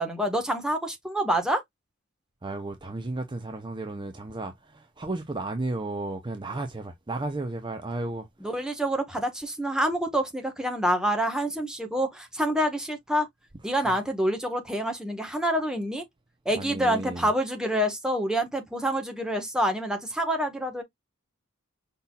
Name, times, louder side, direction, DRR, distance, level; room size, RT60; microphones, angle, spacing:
voice 1, 0.0-1.6 8.4-13.3 13.6-16.0 16.4-20.8, equal, 5° right, 1.2 m, -27 dB
voice 2, 2.4-8.5 13.7-14.0 16.6-17.3, right 2 dB, 20° right, 0.7 m, -34 dB
5.5 x 4.1 x 2.3 m
head